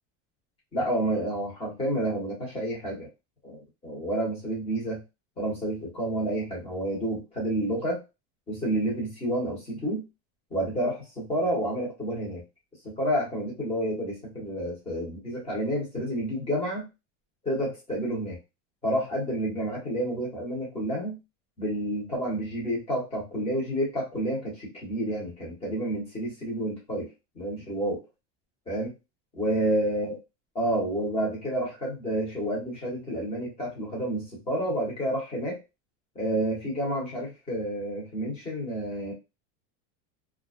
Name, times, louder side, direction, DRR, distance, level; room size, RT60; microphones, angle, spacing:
voice 1, 0.7-3.1 3.4-5.0 5.4-8.0 8.5-10.0 10.5-12.4 12.8-16.9 17.4-18.4 18.8-21.2 21.6-28.0 28.7-28.9 29.4-30.2 30.5-35.6 36.1-39.1, right 1 dB, 15° left, -4 dB, 1.1 m, -29 dB
2.3 x 2.1 x 2.5 m, 0.25 s
supercardioid pair, 170°, 37 cm